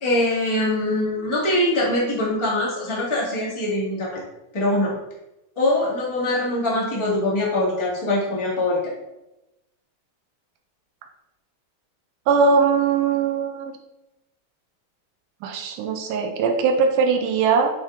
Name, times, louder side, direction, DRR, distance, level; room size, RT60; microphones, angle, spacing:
voice 1, 0.0-4.2 4.5-5.0 5.5-8.9, left 1 dB, 15° left, -5 dB, 0.9 m, -23 dB
voice 2, 12.3-13.7 15.4-17.7, right 5 dB, 85° right, 4 dB, 2.2 m, -20 dB
8.3 x 3.7 x 3.7 m, 0.94 s
omnidirectional pair, 3.6 m